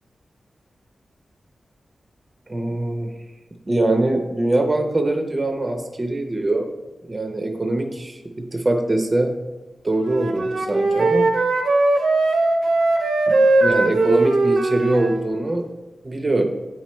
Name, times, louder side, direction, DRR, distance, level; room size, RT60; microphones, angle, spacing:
voice 1, 2.5-3.1 3.7-6.7 7.1-9.3 9.8-11.3 13.3-15.6 16.0-16.4, right 2 dB, 25° right, 4 dB, 0.6 m, -23 dB
Wind instrument woodwind instrument, 10.0-15.3, right 2 dB, 85° right, 0.8 m, -19 dB
8.8 x 4.4 x 3.0 m, 1.1 s
wide cardioid pair, 140°, 0 cm